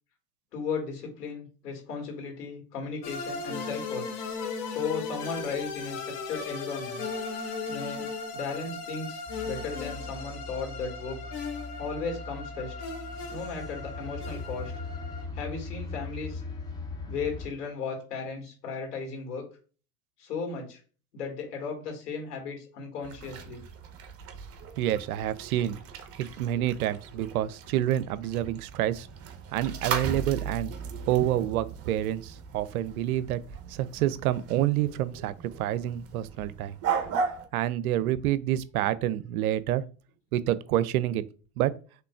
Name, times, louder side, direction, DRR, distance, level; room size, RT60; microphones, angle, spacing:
voice 1, 0.5-4.1 4.7-7.1 7.7-8.1 8.3-11.3 11.8-12.7 13.3-14.7 15.3-16.4 17.1-19.4 20.2-20.8 21.1-23.6, left 5 dB, 75° left, 2.1 m, -35 dB
sound 1, 3.0-15.3, left 4 dB, 45° left, 1.1 m, -37 dB
sound 2, 9.3-17.5, left 3 dB, 10° left, 0.4 m, -40 dB
sound 3, 23.0-37.5, right 6 dB, 30° right, 0.7 m, -37 dB
voice 2, 24.8-25.8 26.2-29.1 29.5-30.7 31.1-33.4 33.7-36.7 37.5-39.8 40.3-41.2 41.6-41.7, right 12 dB, 65° right, 0.6 m, -28 dB
5.9 x 3.1 x 2.3 m
hypercardioid pair, 100°, 47 cm